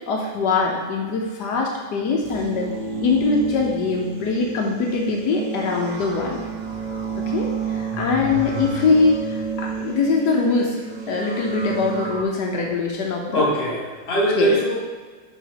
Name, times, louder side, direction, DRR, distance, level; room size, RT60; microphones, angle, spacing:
voice 1, 0.1-2.7 3.0-6.4 7.2-10.8 11.1-13.5 14.3-14.5, left 4 dB, 80° left, 0 dB, 1.4 m, -22 dB
sound 1, 2.2-12.2, right 5 dB, 55° right, 0.4 m, -30 dB
voice 2, 13.3-14.8, right 1 dB, 35° left, -4 dB, 1.6 m, -21 dB
5.1 x 4.8 x 5.9 m, 1.4 s
omnidirectional pair, 1.8 m